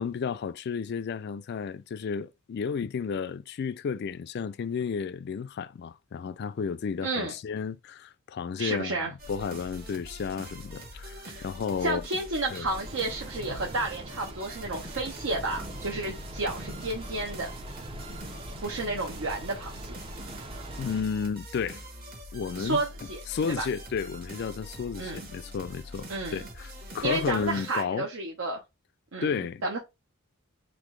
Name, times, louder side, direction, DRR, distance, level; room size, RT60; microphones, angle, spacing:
voice 1, 0.0-12.0 12.5-12.7 20.8-21.8 22.3-22.8 23.3-28.1 29.2-29.8, left 6 dB, 50° left, 0.3 m, -32 dB
voice 2, 7.0-7.3 8.6-9.1 11.2-11.5 11.8-17.5 18.6-20.0 22.6-23.2 23.6-23.7 25.0-25.3 26.1-26.5 27.0-28.6 29.1-29.8, right 2 dB, 70° right, 0.8 m, -31 dB
sound 1, 9.2-27.8, equal, 40° right, 1.1 m, -44 dB
sound 2, 12.6-21.0, right 2 dB, 25° right, 0.5 m, -42 dB
4.1 x 2.9 x 3.2 m
head